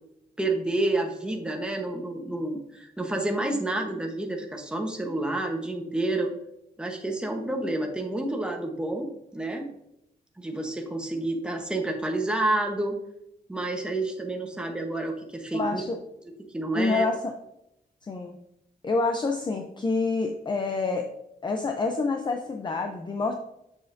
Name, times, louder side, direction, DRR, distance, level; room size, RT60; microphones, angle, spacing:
voice 1, 0.4-6.3 6.8-9.7 10.4-13.0 13.5-15.8 16.5-17.1, right 2 dB, 5° right, 2 dB, 0.9 m, -29 dB
voice 2, 15.5-16.0 16.7-17.3 18.1-18.4 18.8-21.1 21.4-23.3, left 3 dB, 25° left, 4 dB, 0.5 m, -27 dB
7.3 x 6.8 x 2.6 m, 0.83 s
wide cardioid pair, 160°, 17 cm